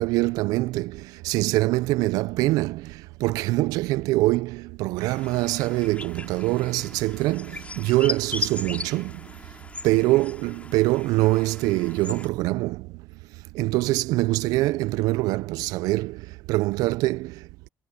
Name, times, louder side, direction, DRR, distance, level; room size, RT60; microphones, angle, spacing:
voice 1, 0.0-9.4 9.8-13.0 13.5-17.5, right 19 dB, 75° right, 0.6 m, -24 dB
sound 1, 5.0-12.3, left 3 dB, 20° left, 3.2 m, -38 dB
hypercardioid pair, 60°, 6 cm